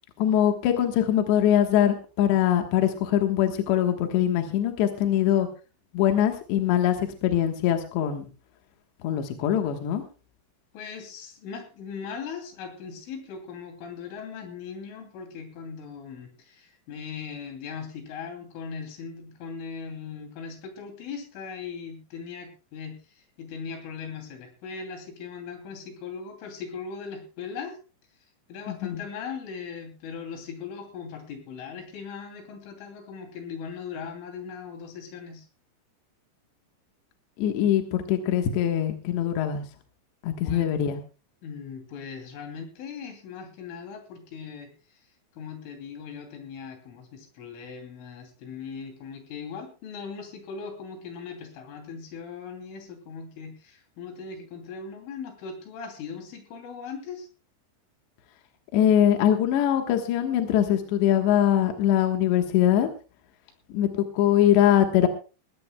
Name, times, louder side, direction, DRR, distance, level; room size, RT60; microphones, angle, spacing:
voice 1, 0.2-5.5 5.9-8.3 9.0-10.0 28.7-29.0 37.4-39.6 40.2-41.0 58.7-62.9 63.7-65.1, left 10 dB, 70° left, 5 dB, 3.4 m, -22 dB
voice 2, 10.7-27.8 28.5-35.5 40.4-40.7 41.4-44.7 45.3-57.3, left 6 dB, 90° left, 5 dB, 5.3 m, -39 dB
20.5 x 16.5 x 2.3 m, 0.34 s
omnidirectional pair, 5.5 m